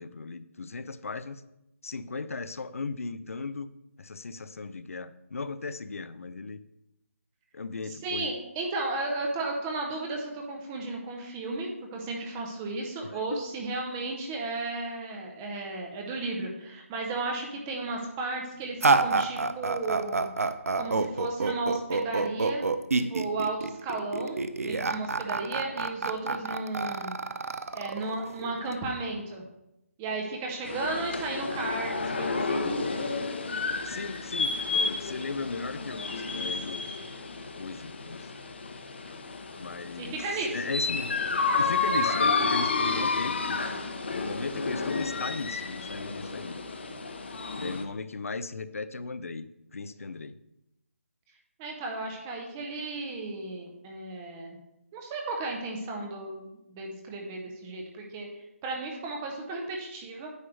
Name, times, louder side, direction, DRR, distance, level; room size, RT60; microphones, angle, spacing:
voice 1, 0.0-1.4 1.8-3.7 4.0-6.6 7.5-8.3 13.1-13.4 33.8-36.8 37.6-38.3 39.6-40.2 40.5-41.2 41.6-43.6 44.1-46.6 47.6-50.4, left 4 dB, 75° left, 14 dB, 0.5 m, -37 dB
voice 2, 7.9-20.3 20.7-22.7 22.9-27.2 27.7-29.4 30.0-32.7 40.0-40.6 51.6-54.6 54.9-60.3, right 3 dB, 10° right, 1 dB, 0.5 m, -34 dB
sound 1, 18.8-28.7, right 3 dB, 90° right, 0.6 m, -28 dB
sound 2, 30.6-47.8, left 4 dB, 50° left, 0.8 m, -31 dB
9.5 x 3.2 x 6.2 m, 0.86 s
hypercardioid pair, 175°, 8 cm